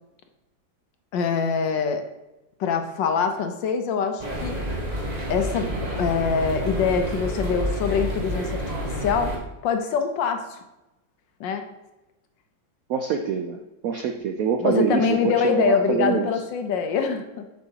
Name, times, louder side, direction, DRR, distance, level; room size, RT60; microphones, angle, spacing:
voice 1, 1.1-2.0 2.6-4.6 5.3-8.6 9.0-10.6 11.4-11.6 14.6-17.4, left 6 dB, 75° left, 6 dB, 1.4 m, -24 dB
sound 1, 4.2-9.4, equal, 25° right, 1.0 m, -29 dB
voice 2, 12.9-16.3, right 6 dB, 85° right, 4 dB, 0.7 m, -25 dB
7.5 x 6.3 x 2.8 m, 0.96 s
omnidirectional pair, 2.1 m